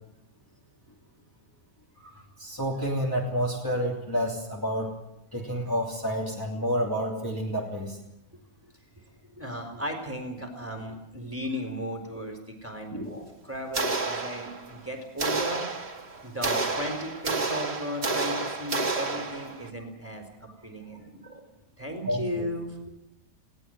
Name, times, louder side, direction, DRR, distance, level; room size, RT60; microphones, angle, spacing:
voice 1, 2.1-4.9 5.3-8.0 12.9-13.2 22.0-22.2, equal, 15° left, -3 dB, 3.1 m, -29 dB
voice 2, 9.4-15.6 16.2-20.2 20.6-22.9, equal, 10° right, 3 dB, 4.0 m, -36 dB
sound 1, 13.7-14.8 15.2-19.7, right 3 dB, 45° right, 2.2 m, -30 dB
21.0 x 17.5 x 7.8 m, 0.85 s
omnidirectional pair, 1.5 m